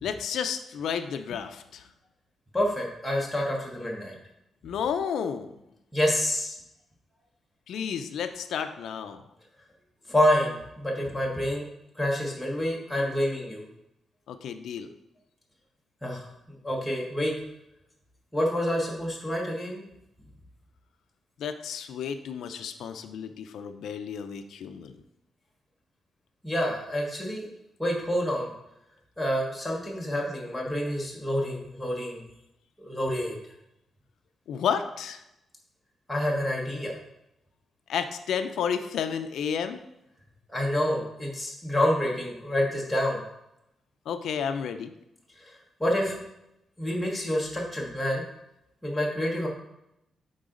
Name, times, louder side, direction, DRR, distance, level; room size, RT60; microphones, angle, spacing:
voice 1, 0.0-1.9 4.6-5.6 7.7-9.2 14.3-14.9 21.4-25.0 34.5-35.2 37.9-39.8 44.1-44.9, left 7 dB, 85° left, 9 dB, 0.5 m, -31 dB
voice 2, 2.5-4.1 5.9-6.5 10.1-11.6 11.9-13.6 16.0-16.3 16.6-17.3 18.3-19.8 26.4-27.5 27.8-28.5 29.2-32.2 32.8-33.4 36.1-36.9 40.5-43.2 45.4-46.2 46.8-48.2 48.8-49.5, equal, 5° left, -3 dB, 1.2 m, -28 dB
9.0 x 3.9 x 3.8 m, 0.85 s
wide cardioid pair, 160°, 0 cm